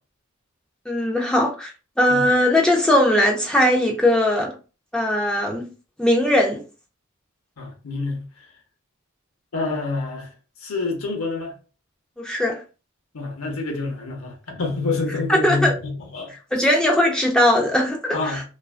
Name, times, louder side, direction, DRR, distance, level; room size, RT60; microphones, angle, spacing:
voice 1, 0.9-1.7 2.0-4.5 4.9-5.6 6.0-6.6 12.2-12.6 15.3-15.7 16.5-18.4, left 1 dB, 5° left, 0.4 m, -19 dB
voice 2, 7.6-8.2 9.5-10.3 10.6-11.5 13.1-16.3 18.1-18.4, left 3 dB, 75° left, 0.7 m, -27 dB
2.4 x 2.2 x 2.3 m
head